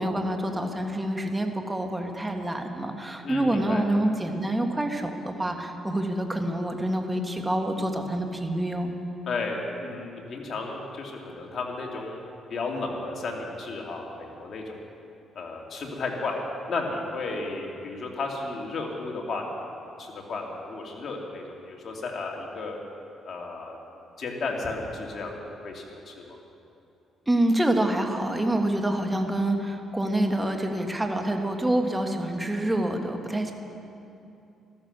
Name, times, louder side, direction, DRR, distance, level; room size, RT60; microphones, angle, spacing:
voice 1, 0.0-8.9 27.3-33.5, right 1 dB, 15° right, 4 dB, 1.6 m, -27 dB
voice 2, 3.2-3.8 9.3-12.2 12.5-14.8 15.3-16.4 16.7-22.8 23.2-23.8 24.2-26.4, left 3 dB, 55° left, 0 dB, 2.7 m, -33 dB
14.5 x 13.5 x 6.8 m, 2.8 s
cardioid pair, 90°, 0 cm